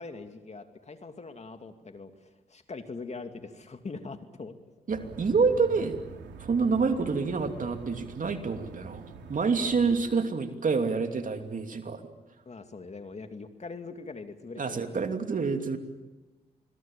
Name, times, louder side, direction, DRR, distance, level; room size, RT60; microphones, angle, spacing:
voice 1, 0.0-4.5 12.5-15.0, left 4 dB, 40° left, 7 dB, 2.6 m, -42 dB
voice 2, 4.9-5.9 6.4-12.0 14.6-15.8, right 4 dB, 45° right, 6 dB, 2.8 m, -27 dB
sound 1, 4.9-10.0, right 5 dB, 75° right, 3.0 m, -45 dB
27.5 x 21.5 x 7.4 m, 1.2 s
hypercardioid pair, 45°, 18 cm